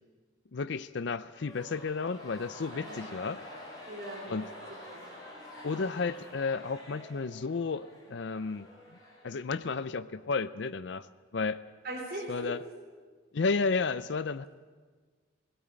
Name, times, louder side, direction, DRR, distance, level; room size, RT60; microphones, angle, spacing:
voice 1, 0.5-3.4 4.3-4.5 5.6-8.7 9.2-11.1 11.3-11.6 12.3-12.6 13.3-14.4, left 4 dB, 65° left, 13 dB, 0.5 m, -32 dB
sound 1, 1.3-9.7, left 1 dB, 20° left, 5.8 m, -48 dB
voice 2, 2.7-3.1 3.9-4.5 4.9-5.0 11.8-12.6, right 1 dB, 50° right, -3 dB, 3.8 m, -40 dB
17.5 x 17.5 x 8.8 m, 1.5 s
head